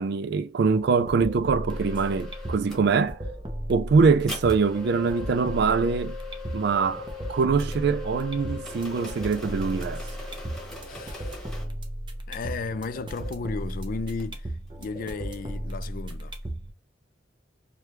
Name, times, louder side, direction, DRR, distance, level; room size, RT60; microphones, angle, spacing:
voice 1, 0.0-3.2 3.7-6.2 6.5-10.0, right 5 dB, 60° right, 0.4 m, -23 dB
sound 1, 0.7-16.7, right 1 dB, 25° right, 0.7 m, -36 dB
sound 2, 1.7-2.9 4.3-11.7 13.1-13.3 13.6-14.8 16.1-16.4, left 5 dB, 5° left, 1.2 m, -41 dB
voice 2, 10.8-11.4 12.3-14.5 14.8-16.3, left 4 dB, 50° left, 0.3 m, -34 dB
4.9 x 2.2 x 3.0 m
head